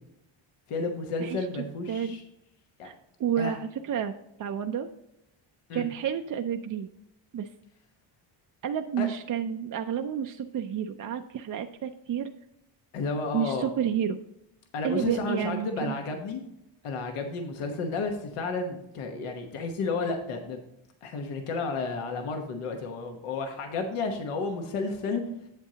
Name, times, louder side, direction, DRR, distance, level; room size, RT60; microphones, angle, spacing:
voice 1, 0.7-2.2 2.8-2.9 3.4-3.5 5.7-5.9 9.0-9.1 12.9-13.7 14.7-16.4 16.8-20.6 21.0-25.2, left 3 dB, 85° left, 4 dB, 1.2 m, -32 dB
voice 2, 1.9-2.2 2.8-2.9 3.2-4.1 4.4-4.9 5.7-6.9 7.3-7.5 8.6-12.3 13.3-14.2 14.8-16.0, right 8 dB, 45° right, 5 dB, 0.4 m, -30 dB
8.1 x 7.7 x 2.8 m, 0.83 s
cardioid pair, 125°, 50 cm